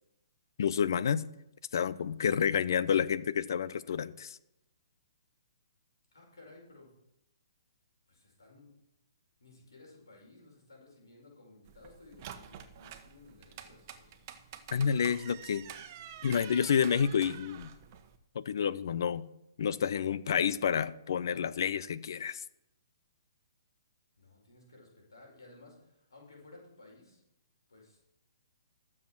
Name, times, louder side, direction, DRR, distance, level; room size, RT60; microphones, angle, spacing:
voice 1, 0.6-1.2 1.7-4.4 14.7-15.7 16.2-17.7 18.3-19.3 19.6-22.4, left 7 dB, 65° left, 16 dB, 0.7 m, -29 dB
voice 2, 6.1-7.0 8.1-8.7 9.4-14.1 24.2-27.2 27.7-28.0, left 2 dB, 85° left, -1 dB, 5.2 m, -56 dB
sound 1, 11.7-18.2, right 9 dB, 40° right, 1.1 m, -48 dB
13.5 x 7.4 x 6.1 m, 0.84 s
hypercardioid pair, 140°, 2 cm